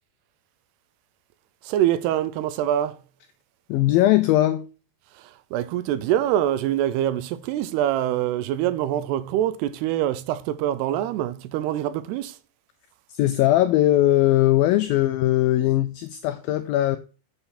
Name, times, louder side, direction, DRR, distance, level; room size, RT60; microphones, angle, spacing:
voice 1, 1.6-3.0 5.2-12.4, right 12 dB, 85° right, 2.7 m, -25 dB
voice 2, 3.7-4.7 13.1-17.0, left 14 dB, 85° left, 2.0 m, -20 dB
7.9 x 5.7 x 4.1 m
omnidirectional pair, 4.7 m